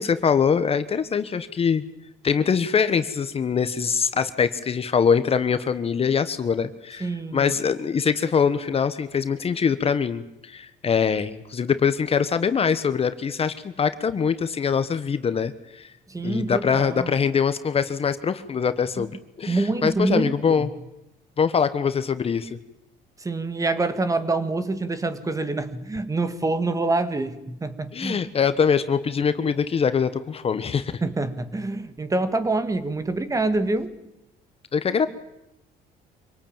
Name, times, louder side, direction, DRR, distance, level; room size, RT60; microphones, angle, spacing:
voice 1, 0.0-1.8 2.2-15.9 16.2-20.7 21.4-22.6 27.9-30.9 34.7-35.1, left 6 dB, 35° left, 12 dB, 1.3 m, -23 dB
voice 2, 7.0-7.6 16.1-17.1 19.0-19.1 19.5-20.7 23.2-28.2 31.0-34.0, right 2 dB, 20° right, 12 dB, 1.9 m, -26 dB
25.5 x 18.5 x 9.0 m, 0.88 s
cardioid pair, 110°, 17 cm